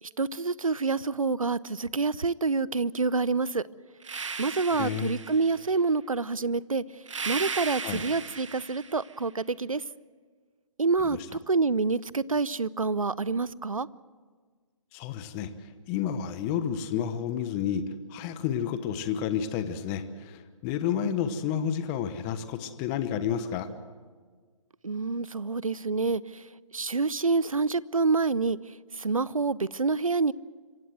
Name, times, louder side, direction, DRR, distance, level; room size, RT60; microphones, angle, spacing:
voice 1, 0.2-3.6 4.4-6.8 7.2-9.8 10.8-11.2 11.5-13.9 24.8-26.4 26.7-28.6 29.0-30.3, right 4 dB, 90° right, 22 dB, 0.6 m, -27 dB
sound 1, 4.0-5.7 7.1-9.1, right 5 dB, 65° right, 1.6 m, -36 dB
voice 2, 4.7-5.2 7.8-8.0 11.0-11.2 14.9-17.8 18.1-23.7, left 8 dB, 25° left, 11 dB, 1.1 m, -30 dB
26.0 x 15.5 x 7.9 m, 1.5 s
figure-of-eight pair, 135°, 17 cm